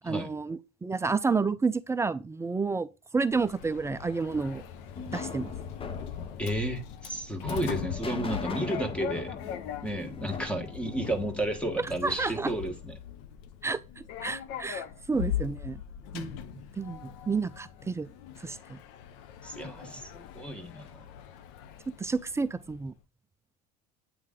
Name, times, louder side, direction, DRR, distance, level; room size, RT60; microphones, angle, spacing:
voice 1, 0.0-2.9 3.1-4.6 5.1-5.5 12.0-12.5 13.6-15.8 16.1-16.4 16.8-18.1 18.4-18.8 22.0-22.9, right 4 dB, 15° right, 0.4 m, -30 dB
Sliding door, 3.3-22.9, left 9 dB, 70° left, 0.7 m, -41 dB
sound 1, 4.3-12.4, left 5 dB, 25° left, 0.7 m, -40 dB
voice 2, 6.4-9.3 9.8-12.9 19.4-21.0, right 1 dB, 5° left, 1.3 m, -32 dB
8.5 x 3.1 x 3.7 m
supercardioid pair, 95°, 21 cm